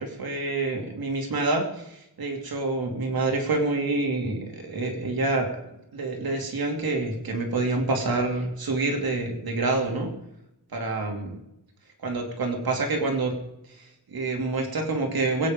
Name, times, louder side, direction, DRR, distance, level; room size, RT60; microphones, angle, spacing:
voice 1, 0.0-10.1 10.7-11.4 12.0-13.3 13.7-15.5, right 3 dB, 65° right, 2 dB, 2.9 m, -27 dB
22.0 x 9.2 x 5.3 m, 0.81 s
wide cardioid pair, 170°, 39 cm